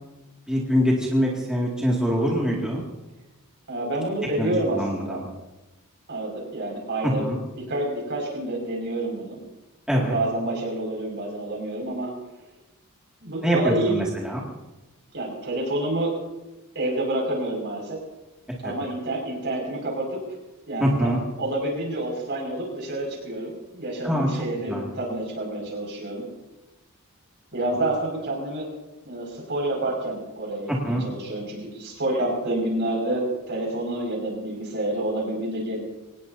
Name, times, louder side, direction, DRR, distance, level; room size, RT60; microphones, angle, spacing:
voice 1, 0.5-2.8 4.4-5.3 7.0-7.4 9.9-10.2 13.4-14.4 18.6-18.7 20.8-21.2 24.0-24.3 24.7-24.9 30.7-31.0, equal, 5° right, -4 dB, 2.2 m, -24 dB
voice 2, 3.7-5.2 6.1-7.3 7.5-9.4 10.0-12.1 13.2-14.0 15.1-16.1 16.7-18.0 18.6-20.2 20.7-21.1 21.4-26.2 27.5-28.7 29.0-35.8, right 1 dB, 50° right, 0 dB, 5.8 m, -28 dB
24.5 x 18.5 x 2.8 m, 1.0 s
head